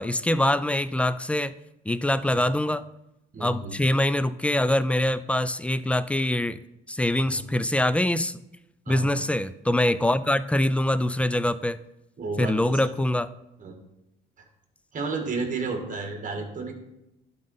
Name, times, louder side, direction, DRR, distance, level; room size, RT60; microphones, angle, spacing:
voice 1, 0.0-1.5 1.9-2.8 3.4-6.6 6.9-8.4 8.9-11.8 12.4-13.3, left 1 dB, 5° left, 14 dB, 0.3 m, -24 dB
voice 2, 3.3-3.8 7.3-7.4 8.8-9.2 12.2-12.9 13.6-13.8 14.9-16.7, right 4 dB, 40° right, 3 dB, 1.8 m, -32 dB
11.5 x 3.9 x 4.0 m, 0.89 s
cardioid pair, 85°, 20 cm